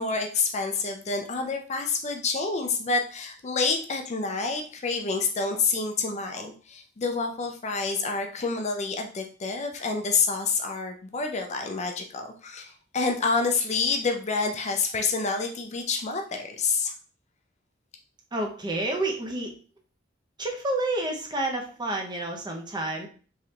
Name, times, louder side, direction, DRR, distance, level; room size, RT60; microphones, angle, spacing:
voice 1, 0.0-16.9, left 4 dB, 35° left, 4 dB, 0.5 m, -28 dB
voice 2, 18.3-19.5 20.4-23.1, right 2 dB, 25° right, 1 dB, 0.7 m, -29 dB
3.7 x 3.1 x 2.8 m, 0.40 s
head